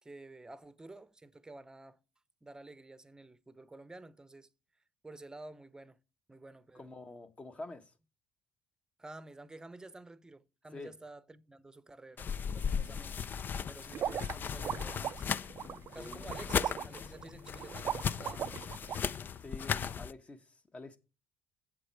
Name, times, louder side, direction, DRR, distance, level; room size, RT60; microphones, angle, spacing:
voice 1, 0.0-2.0 2.4-4.5 5.0-6.0 6.3-6.9 9.0-13.3 13.7-15.2 15.9-18.4, right 2 dB, 15° right, 0.8 m, -51 dB
voice 2, 6.7-7.9 10.7-10.9 16.0-16.3 19.4-21.0, left 2 dB, 25° left, 1.2 m, -47 dB
sound 1, 12.2-20.1, left 7 dB, 45° left, 0.5 m, -37 dB
sound 2, 13.9-19.0, right 10 dB, 50° right, 0.4 m, -38 dB
7.6 x 7.6 x 4.6 m
hypercardioid pair, 60°, 5 cm